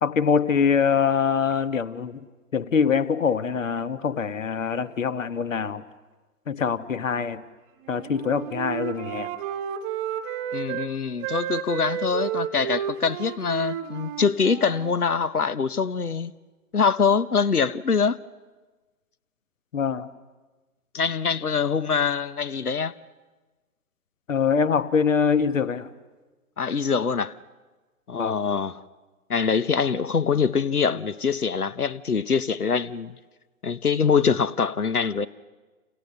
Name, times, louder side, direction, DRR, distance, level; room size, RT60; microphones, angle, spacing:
voice 1, 0.0-2.2 2.5-5.8 6.5-7.4 7.9-9.3 19.7-20.1 24.3-25.9 28.2-28.4, left 6 dB, 60° left, 1.3 m, -24 dB
Wind instrument woodwind instrument, 7.8-10.9 11.2-15.0, right 10 dB, 20° right, 1.2 m, -32 dB
voice 2, 10.5-16.3 16.7-18.2 20.9-22.9 26.6-27.3 28.1-28.8 29.3-33.2 33.6-35.3, left 5 dB, 80° left, 1.0 m, -24 dB
29.5 x 28.0 x 6.7 m
figure-of-eight pair, 130°, 44 cm